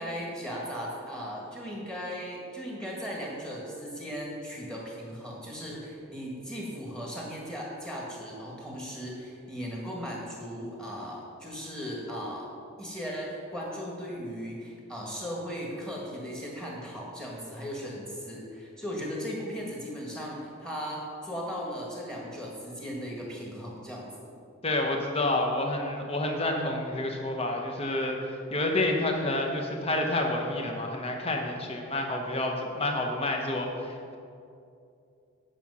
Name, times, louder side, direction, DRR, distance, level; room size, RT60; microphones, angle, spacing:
voice 1, 0.0-12.5 12.8-24.3, equal, 5° left, -3 dB, 1.6 m, -37 dB
voice 2, 24.6-34.2, left 2 dB, 25° left, 2 dB, 0.9 m, -29 dB
9.0 x 6.0 x 5.5 m, 2.5 s
head